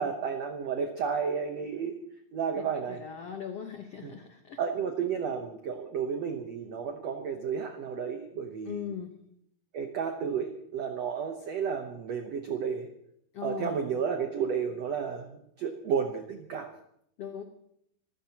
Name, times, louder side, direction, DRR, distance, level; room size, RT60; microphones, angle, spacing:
voice 1, 0.0-2.0 2.3-3.0 4.0-4.1 4.6-8.8 9.7-12.9 13.4-16.7, right 6 dB, 85° right, 5 dB, 1.4 m, -32 dB
voice 2, 2.5-4.6 8.6-9.2 13.3-13.8 17.2-17.4, left 8 dB, 85° left, 4 dB, 1.3 m, -39 dB
27.0 x 15.5 x 3.0 m, 0.72 s
omnidirectional pair, 4.7 m